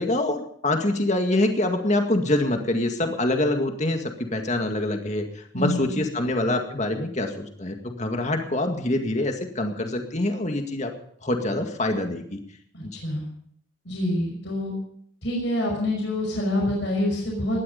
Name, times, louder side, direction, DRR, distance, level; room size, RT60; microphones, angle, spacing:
voice 1, 0.0-10.9 11.2-12.4 12.8-12.9, left 1 dB, 35° left, 4 dB, 2.1 m, -25 dB
voice 2, 5.5-5.9 12.7-13.3 13.9-14.7 15.2-17.6, left 1 dB, 60° left, -1 dB, 5.6 m, -26 dB
19.0 x 13.0 x 5.3 m, 0.64 s
head